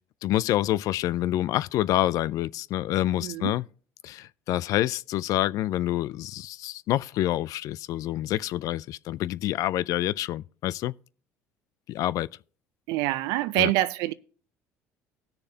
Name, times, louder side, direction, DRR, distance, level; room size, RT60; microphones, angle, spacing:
voice 1, 0.2-3.6 4.0-10.9 11.9-12.3 13.5-13.7, left 14 dB, 65° left, 0.3 m, -27 dB
voice 2, 3.2-3.6 12.9-14.1, right 16 dB, 75° right, 0.5 m, -26 dB
18.0 x 6.7 x 2.8 m
supercardioid pair, 75°, 6 cm